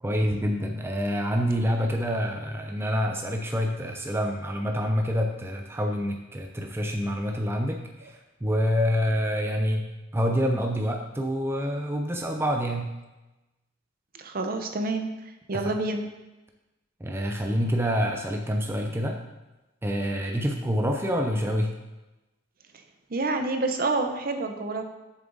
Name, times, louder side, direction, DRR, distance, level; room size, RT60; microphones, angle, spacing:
voice 1, 0.0-9.9 10.1-12.9 15.5-15.7 17.0-19.2 19.8-21.7, equal, 10° right, 3 dB, 0.5 m, -27 dB
voice 2, 14.1-15.1 15.5-16.0 23.1-24.8, right 2 dB, 45° right, 6 dB, 0.7 m, -28 dB
7.2 x 6.9 x 4.0 m, 1.1 s
head